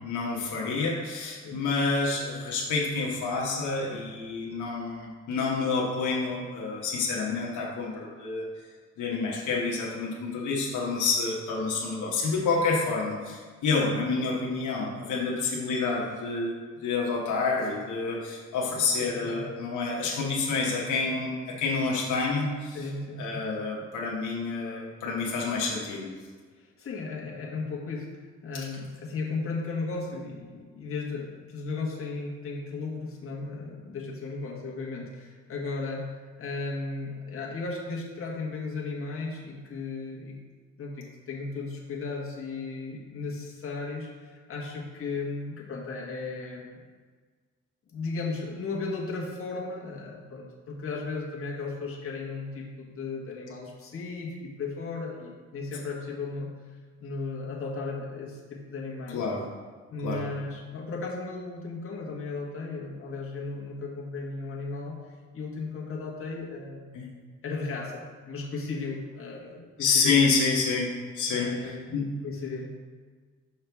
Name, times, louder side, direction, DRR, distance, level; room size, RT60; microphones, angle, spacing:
voice 1, 0.0-8.5 9.0-16.5 16.8-22.8 23.2-26.1 59.1-59.4 60.0-60.2 66.9-67.0 69.8-72.1, left 4 dB, 80° left, -3 dB, 1.2 m, -28 dB
voice 2, 19.0-19.5 22.7-23.4 26.6-28.1 28.4-36.1 36.4-40.4 40.8-46.9 47.9-56.5 57.0-59.2 59.9-65.0 65.3-66.9 67.4-70.3 71.3-72.0 72.2-72.7, left 3 dB, 45° left, -3 dB, 1.4 m, -35 dB
5.7 x 5.6 x 3.5 m, 1.5 s
cardioid pair, 90°, 30 cm